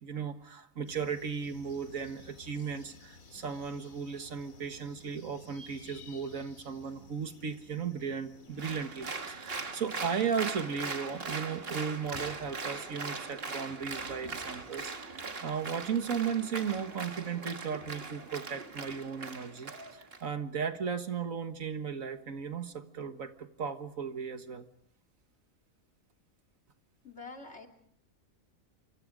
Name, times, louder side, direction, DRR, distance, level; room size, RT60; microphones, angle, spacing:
voice 1, 0.0-24.7, right 6 dB, 75° right, 8 dB, 1.9 m, -36 dB
sound 1, 0.9-13.0, left 3 dB, 85° left, 2.4 m, -56 dB
Applause, 8.6-20.2, right 4 dB, 45° right, 1.8 m, -40 dB
voice 2, 27.0-27.7, left 3 dB, 55° left, 3 dB, 3.2 m, -46 dB
27.5 x 24.5 x 5.1 m, 0.69 s
omnidirectional pair, 1.4 m